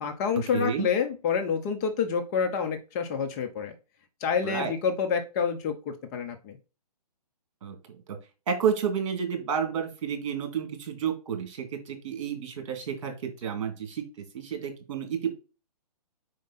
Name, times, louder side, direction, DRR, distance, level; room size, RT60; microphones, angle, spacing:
voice 1, 0.0-3.7 4.2-6.6, left 6 dB, 25° left, 6 dB, 0.8 m, -28 dB
voice 2, 0.5-0.9 4.4-4.7 7.6-7.7 8.1-8.2 8.5-14.0 14.3-15.3, right 7 dB, 50° right, 6 dB, 2.3 m, -30 dB
5.0 x 4.7 x 4.1 m, 0.31 s
hypercardioid pair, 150°, 21 cm